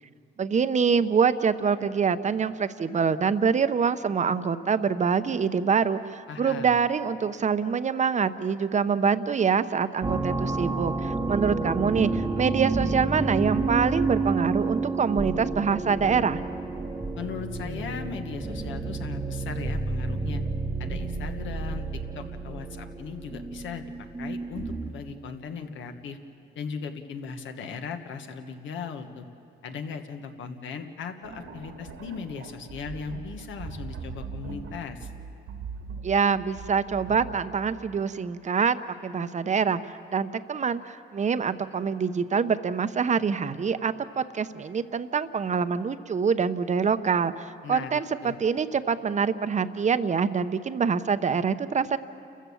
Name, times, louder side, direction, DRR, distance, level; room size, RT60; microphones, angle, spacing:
voice 1, 0.4-16.4 36.0-38.8 39.0-52.0, right 6 dB, 35° right, 12 dB, 0.8 m, -25 dB
voice 2, 6.3-6.8 17.1-20.4 20.8-23.9 24.2-26.2 26.5-29.3 29.6-35.1 47.6-48.4, left 6 dB, 75° left, 6 dB, 1.5 m, -38 dB
sound 1, 10.0-25.1, right 3 dB, 15° right, 1.1 m, -30 dB
sound 2, 31.2-38.1, right 5 dB, 75° right, 1.9 m, -41 dB
29.5 x 15.0 x 7.1 m, 2.5 s
cardioid pair, 90°, 20 cm